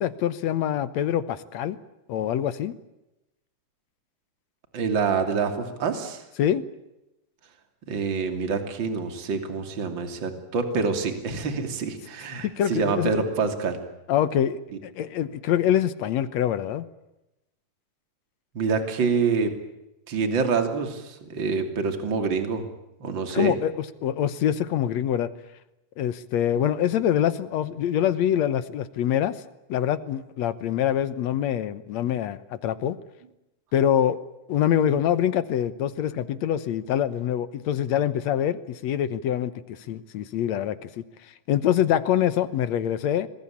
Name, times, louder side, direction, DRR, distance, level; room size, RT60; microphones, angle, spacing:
voice 1, 0.0-1.8 2.1-2.7 6.4-6.6 12.6-13.1 14.1-16.9 23.3-25.3 26.0-29.4 29.7-33.0 33.7-34.2 34.5-41.0 41.5-43.3, left 10 dB, 65° left, 15 dB, 2.0 m, -25 dB
voice 2, 4.7-6.2 7.9-13.8 18.5-19.5 20.1-22.6 23.0-23.5, right 5 dB, 35° right, 7 dB, 3.3 m, -26 dB
26.0 x 21.5 x 8.5 m, 0.93 s
omnidirectional pair, 3.8 m